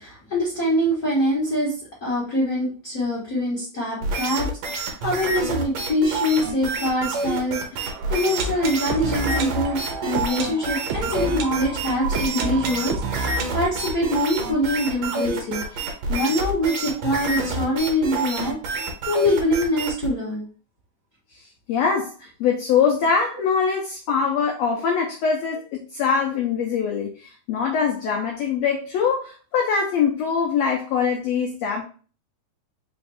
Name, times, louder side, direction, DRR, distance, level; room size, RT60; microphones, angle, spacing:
voice 1, 0.0-1.7 2.0-20.4, left 1 dB, 70° left, -6 dB, 0.8 m, -24 dB
sound 1, 4.0-20.1, right 2 dB, 65° right, 1.8 m, -28 dB
sound 2, 7.9-15.7 15.9-16.0 16.2-16.3 16.9-17.0, right 3 dB, 85° right, 1.6 m, -31 dB
voice 2, 21.7-31.8, left 6 dB, 85° left, 0 dB, 1.5 m, -23 dB
4.9 x 2.6 x 3.3 m, 0.40 s
omnidirectional pair, 3.8 m